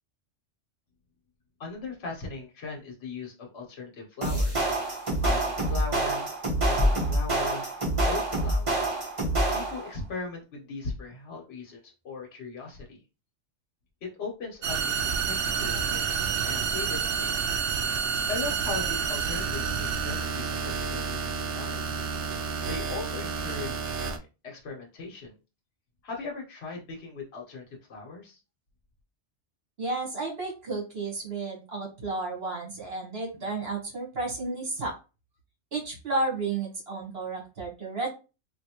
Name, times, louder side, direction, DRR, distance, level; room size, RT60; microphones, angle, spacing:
voice 1, 1.6-4.7 5.2-6.3 6.6-7.7 8.0-8.8 9.5-13.0 14.0-16.1 16.4-17.5 18.3-22.0 22.6-24.2 24.4-25.3 26.0-28.4, left 4 dB, 60° left, 0 dB, 1.2 m, -38 dB
sound 1, 4.2-9.9, right 1 dB, 30° right, 1.0 m, -26 dB
sound 2, 14.6-24.2, right 6 dB, 75° right, 0.8 m, -29 dB
voice 2, 29.8-34.9 35.7-38.1, right 3 dB, 55° right, 0 dB, 1.5 m, -32 dB
3.1 x 2.7 x 2.9 m, 0.30 s
omnidirectional pair, 1.2 m